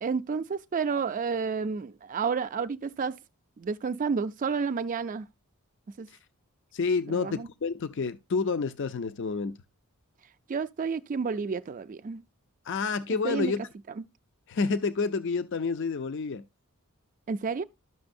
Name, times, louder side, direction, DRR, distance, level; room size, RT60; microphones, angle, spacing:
voice 1, 0.0-3.2 3.6-5.3 6.0-6.1 7.2-7.5 10.5-12.2 13.2-13.5 17.3-17.6, right 5 dB, 35° right, 0.3 m, -30 dB
voice 2, 6.7-9.6 12.6-13.6 14.5-16.4, left 4 dB, 55° left, 0.5 m, -29 dB
12.0 x 6.0 x 2.6 m
head